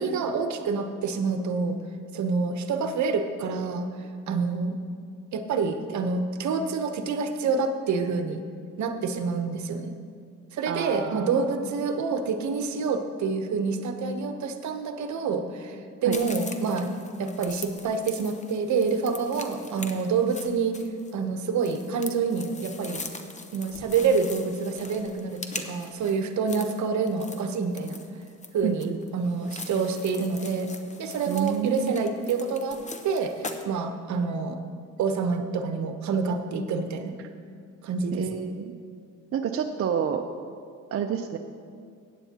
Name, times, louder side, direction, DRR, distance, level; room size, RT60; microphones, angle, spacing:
voice 1, 0.0-1.8 2.1-3.9 4.3-4.7 5.3-8.4 8.8-9.9 10.5-16.9 17.2-20.8 21.1-23.0 23.5-28.0 28.5-30.7 31.0-34.6 35.0-37.1 37.8-38.5, right 4 dB, 70° right, 7 dB, 0.9 m, -27 dB
voice 2, 10.7-11.4 16.0-16.2 28.6-29.0 31.3-32.0 37.2-37.3 38.1-38.7 39.3-40.2 40.9-41.4, right 8 dB, 50° right, 4 dB, 0.6 m, -29 dB
sound 1, 16.1-33.7, left 3 dB, 25° left, 0.8 m, -41 dB
15.5 x 9.1 x 2.9 m, 2.2 s
cardioid pair, 90°, 30 cm